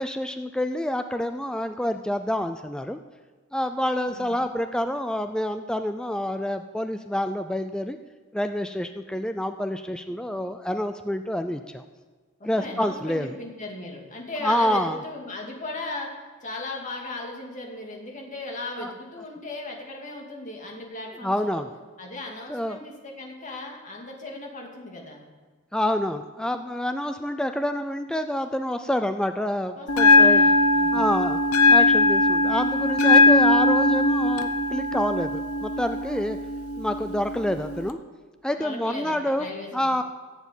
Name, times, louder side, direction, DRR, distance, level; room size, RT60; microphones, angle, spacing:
voice 1, 0.0-3.0 3.5-8.0 8.3-11.8 12.4-13.3 14.4-15.0 18.8-18.9 21.2-21.7 22.5-22.8 25.7-30.4 30.9-31.4 31.7-36.4 36.8-38.0 38.4-40.0, left 1 dB, 5° left, 8 dB, 0.4 m, -27 dB
voice 2, 4.1-4.4 12.4-16.1 16.4-21.6 22.0-25.2 29.8-31.0 38.6-40.0, left 2 dB, 35° left, 0 dB, 2.5 m, -37 dB
Bell, 29.9-37.9, left 2 dB, 85° left, 0.9 m, -20 dB
14.5 x 7.2 x 8.3 m, 1.3 s
head